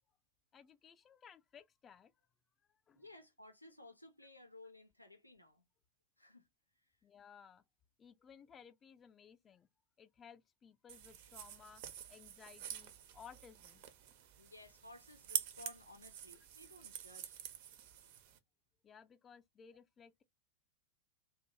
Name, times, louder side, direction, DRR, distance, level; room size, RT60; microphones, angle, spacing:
voice 1, 0.5-2.1 2.7-3.0 7.0-7.6 8.0-9.7 10.0-13.8 18.8-20.2, left 7 dB, 25° left, 0.3 m, -59 dB
voice 2, 2.9-5.6 6.2-6.5 14.4-17.4, left 2 dB, 85° left, 0.5 m, -57 dB
sound 1, 10.9-18.4, right 10 dB, 50° right, 0.4 m, -47 dB
2.5 x 2.2 x 2.8 m
figure-of-eight pair, 90°, 0 cm